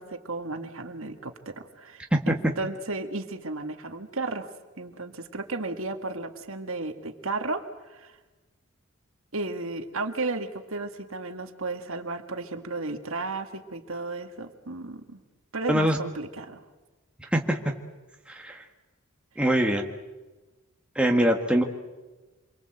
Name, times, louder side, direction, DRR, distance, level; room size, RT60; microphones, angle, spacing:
voice 1, 0.0-4.5 4.8-8.1 9.3-15.2 15.5-16.6, right 3 dB, 65° right, 7 dB, 1.8 m, -34 dB
voice 2, 15.7-16.0 17.3-17.6 18.4-18.5 19.4-19.8 21.0-21.6, right 1 dB, 5° right, 2 dB, 1.7 m, -22 dB
27.5 x 23.0 x 7.9 m, 1.2 s
head